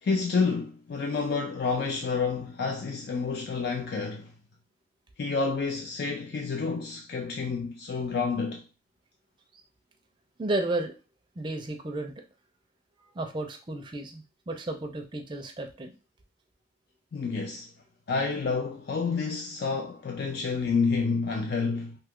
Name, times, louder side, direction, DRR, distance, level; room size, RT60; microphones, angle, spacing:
voice 1, 0.0-4.3 5.2-8.6 17.1-17.7 18.1-22.0, left 4 dB, 60° left, 0.4 m, -29 dB
voice 2, 10.4-10.9 11.4-12.1 13.1-16.0, right 2 dB, 25° right, 0.5 m, -32 dB
2.8 x 2.3 x 3.5 m
head